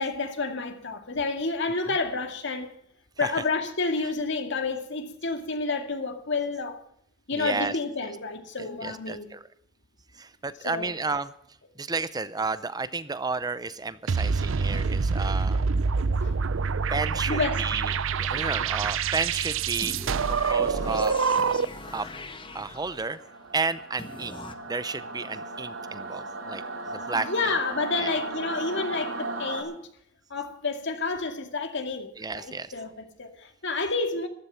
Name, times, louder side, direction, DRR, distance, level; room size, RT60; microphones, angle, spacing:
voice 1, 0.0-2.7 3.2-6.8 7.3-9.3 10.6-10.9 16.2-16.4 17.3-17.6 18.4-18.6 27.1-29.8 30.3-34.3, left 3 dB, 60° left, 2.2 m, -30 dB
voice 2, 7.3-7.7 8.8-9.4 10.2-11.3 11.8-15.6 16.9-17.8 18.2-20.0 20.3-21.2 21.9-22.1 22.5-23.2 23.5-24.4 24.7-26.6 26.9-27.3 28.0-28.2 32.2-32.7, right 4 dB, 20° right, 0.6 m, -32 dB
sound 1, 14.1-21.9, right 5 dB, 70° right, 0.6 m, -26 dB
sound 2, 19.8-23.3 24.0-24.5, left 2 dB, 25° left, 1.1 m, -41 dB
Singing / Musical instrument, 22.4-29.6, right 2 dB, 85° right, 3.6 m, -37 dB
14.5 x 13.5 x 5.7 m
head